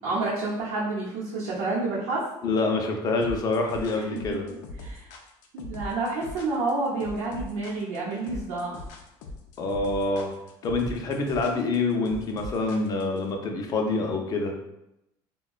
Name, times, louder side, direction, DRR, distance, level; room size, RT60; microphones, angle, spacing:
voice 1, 0.0-2.2 3.9-4.4 4.8-5.1 5.5-8.8, right 3 dB, 75° right, -6 dB, 0.7 m, -29 dB
voice 2, 2.4-4.5 9.6-10.3 10.6-14.5, left 3 dB, 35° left, 2 dB, 0.5 m, -26 dB
sound 1, 3.2-13.2, left 1 dB, 85° left, 0.5 m, -40 dB
3.5 x 2.1 x 2.3 m, 0.86 s
cardioid pair, 125°, 10 cm